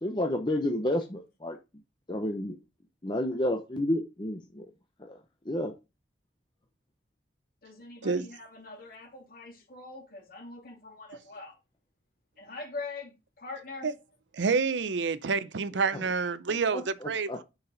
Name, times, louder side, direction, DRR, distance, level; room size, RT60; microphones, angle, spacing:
voice 1, 0.0-1.6 2.1-2.6 3.0-4.7 5.0-5.2 5.5-5.7 15.9-16.0 16.7-17.4, left 1 dB, 25° left, 0.8 m, -30 dB
voice 2, 7.6-11.6 12.4-13.9, left 3 dB, 50° left, 2.5 m, -43 dB
voice 3, 14.3-17.4, right 5 dB, 85° right, 0.6 m, -28 dB
6.9 x 5.5 x 3.9 m
head